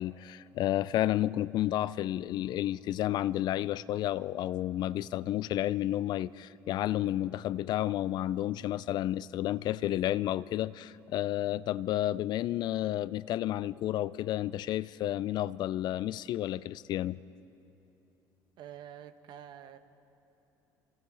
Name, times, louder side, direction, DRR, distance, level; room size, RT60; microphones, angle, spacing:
voice 1, 0.0-17.2, left 13 dB, 60° left, 0.4 m, -31 dB
voice 2, 18.6-19.8, right 10 dB, 65° right, 1.1 m, -47 dB
28.0 x 26.0 x 3.9 m
supercardioid pair, 90°, 8 cm